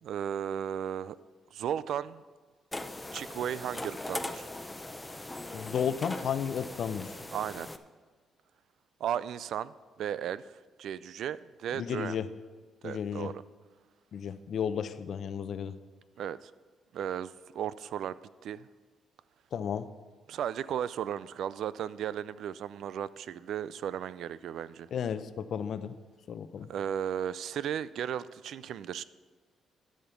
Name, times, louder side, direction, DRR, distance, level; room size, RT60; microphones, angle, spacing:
voice 1, 0.0-1.2 1.5-2.2 3.1-4.5 7.3-7.7 9.0-12.2 12.8-13.4 16.2-16.5 16.9-18.2 18.4-18.7 20.3-24.9 26.7-29.0, right 9 dB, 70° right, 17 dB, 0.3 m, -35 dB
sound 1, 2.7-7.8, left 2 dB, 15° left, 0.6 m, -40 dB
voice 2, 5.5-7.2 11.7-12.3 12.8-13.3 14.1-15.8 19.5-19.9 24.9-26.0 26.3-26.7, left 8 dB, 60° left, 12 dB, 0.6 m, -33 dB
12.5 x 5.1 x 7.0 m, 1.5 s
cardioid pair, 90°, 0 cm